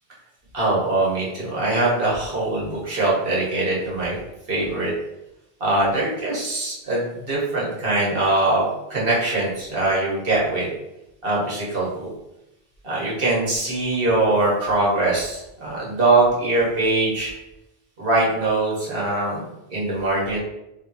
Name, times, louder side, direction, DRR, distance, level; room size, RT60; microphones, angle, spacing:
voice 1, 0.5-4.2 4.5-4.9 5.6-10.7 11.2-12.1 12.8-17.3 18.0-20.4, right 2 dB, 65° right, -5 dB, 1.5 m, -22 dB
3.4 x 2.9 x 3.9 m, 0.91 s
omnidirectional pair, 1.0 m